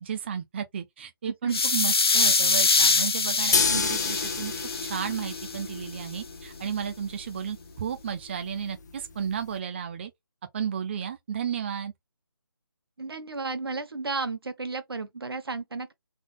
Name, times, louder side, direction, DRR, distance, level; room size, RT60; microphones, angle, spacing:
voice 1, 0.0-4.5 4.8-10.1 10.5-11.9, right 8 dB, 30° right, 0.6 m, -33 dB
sound 1, 1.5-5.6, left 4 dB, 85° left, 0.7 m, -24 dB
sound 2, 3.5-9.6, left 5 dB, 45° left, 0.9 m, -31 dB
voice 2, 13.0-15.9, right 3 dB, 80° right, 1.3 m, -33 dB
3.6 x 3.5 x 3.5 m
figure-of-eight pair, 160°, 12 cm